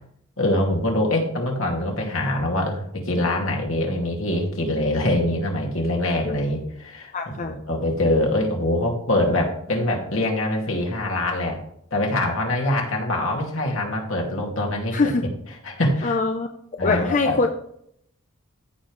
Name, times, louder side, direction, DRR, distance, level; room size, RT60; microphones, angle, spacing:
voice 1, 0.4-7.1 7.4-11.6 11.9-15.0 15.6-16.2 16.8-17.4, left 1 dB, 70° left, 0 dB, 2.4 m, -24 dB
voice 2, 7.1-7.6 14.9-15.2 16.0-16.5 16.8-17.5, left 3 dB, 35° left, 5 dB, 0.6 m, -23 dB
15.0 x 5.5 x 3.2 m, 0.71 s
head